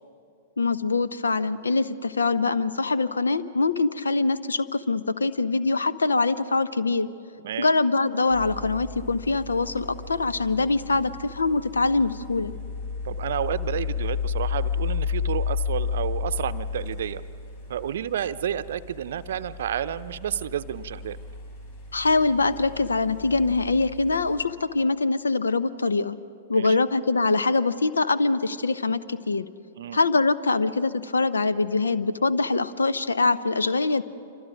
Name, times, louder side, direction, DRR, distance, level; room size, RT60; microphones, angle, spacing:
voice 1, 0.6-7.1 7.6-12.5 21.9-26.2 26.5-29.5 29.9-34.0, left 3 dB, 75° left, 15 dB, 0.8 m, -23 dB
sound 1, 8.3-24.5, left 6 dB, 55° left, 5.1 m, -33 dB
voice 2, 13.0-17.2 17.7-21.2 26.5-26.8 29.8-30.0, right 10 dB, 55° right, 13 dB, 0.6 m, -30 dB
27.5 x 25.5 x 5.1 m, 2.5 s
figure-of-eight pair, 105°, 0 cm